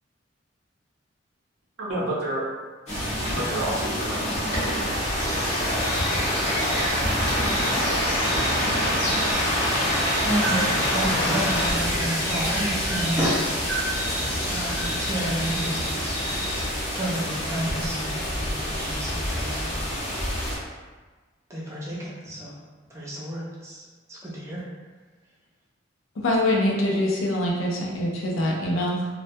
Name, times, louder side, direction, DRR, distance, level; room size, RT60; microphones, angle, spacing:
voice 1, 1.8-2.4 3.3-4.9, right 1 dB, 90° right, -5 dB, 0.7 m, -30 dB
sound 1, 2.9-20.6, equal, 35° left, 0.7 m, -26 dB
sound 2, 5.2-16.7, equal, 15° left, 0.9 m, -31 dB
voice 2, 10.2-13.4 14.4-15.8 16.9-19.7 21.5-22.5 22.9-24.6, right 1 dB, 15° right, -6 dB, 0.5 m, -30 dB
voice 3, 26.2-29.1, left 1 dB, 85° left, -2 dB, 0.5 m, -24 dB
2.2 x 2.1 x 2.6 m, 1.3 s
head